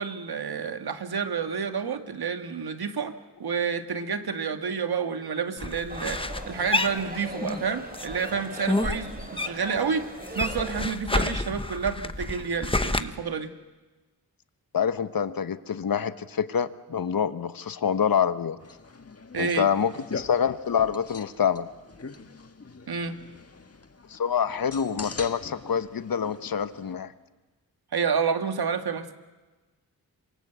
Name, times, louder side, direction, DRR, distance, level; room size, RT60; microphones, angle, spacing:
voice 1, 0.0-13.5 19.3-19.7 22.9-23.2 27.9-29.1, right 6 dB, 80° right, 7 dB, 1.9 m, -29 dB
sound 1, 5.6-7.6 7.9-9.8 10.0-13.0, left 2 dB, 15° left, 1.2 m, -29 dB
sound 2, 5.9-10.9, right 1 dB, 25° right, 4.6 m, -39 dB
voice 2, 14.7-18.6 19.4-21.7 24.1-27.1, left 7 dB, 65° left, 12 dB, 1.1 m, -26 dB
sound 3, 18.6-26.9, left 4 dB, 40° left, 1.7 m, -43 dB
27.0 x 23.0 x 8.1 m, 1.2 s
wide cardioid pair, 80°, 37 cm